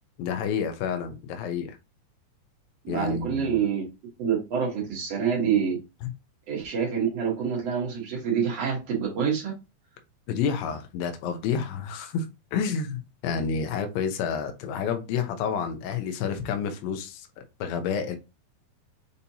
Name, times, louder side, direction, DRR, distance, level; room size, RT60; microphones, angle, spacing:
voice 1, 0.2-1.8 2.9-3.6 10.3-12.3 12.5-17.3 17.6-18.2, left 6 dB, 90° left, 2.0 m, -29 dB
voice 2, 2.8-3.8 4.2-5.8 6.5-9.5, right 7 dB, 85° right, 1.4 m, -26 dB
6.7 x 2.7 x 2.8 m
omnidirectional pair, 5.0 m